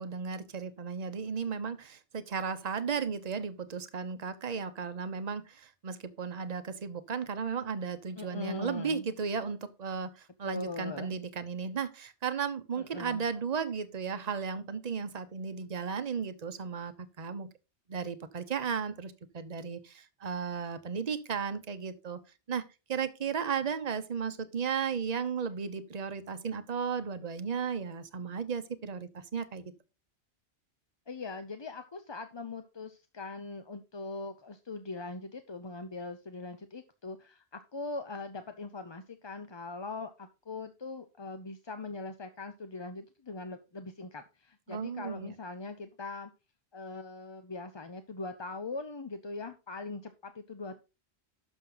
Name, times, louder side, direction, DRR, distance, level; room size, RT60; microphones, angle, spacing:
voice 1, 0.0-17.5 17.9-22.2 22.5-29.7 44.7-45.3, right 6 dB, 40° right, 10 dB, 0.9 m, -35 dB
voice 2, 8.2-9.1 10.4-11.2 12.8-13.2 31.1-46.3 46.7-50.8, left 3 dB, 30° left, 8 dB, 0.6 m, -41 dB
11.5 x 6.3 x 3.9 m, 0.29 s
omnidirectional pair, 1.1 m